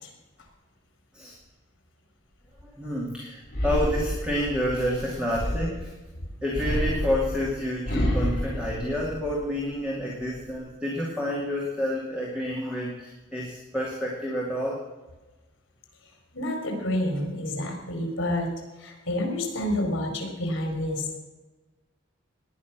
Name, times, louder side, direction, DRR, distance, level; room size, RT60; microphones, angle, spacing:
voice 1, 2.6-5.9 6.4-14.8, equal, 5° right, -4 dB, 2.4 m, -29 dB
sound 1, 3.5-5.9 6.5-9.6 10.0-10.6, equal, 45° left, 5.6 m, -29 dB
voice 2, 16.3-18.5 18.8-21.1, left 1 dB, 65° left, 3 dB, 4.3 m, -28 dB
18.0 x 10.5 x 6.1 m, 1.2 s
head